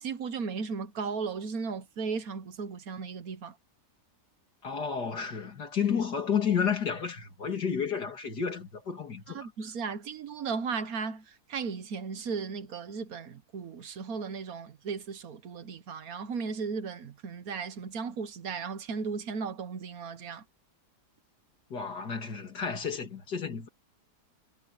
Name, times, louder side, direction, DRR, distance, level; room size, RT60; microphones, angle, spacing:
voice 1, 0.0-3.5 9.3-20.4, right 5 dB, 65° right, 1.5 m, -36 dB
voice 2, 4.6-9.5 21.7-23.7, left 7 dB, 80° left, 3.2 m, -31 dB
omnidirectional pair, 1.8 m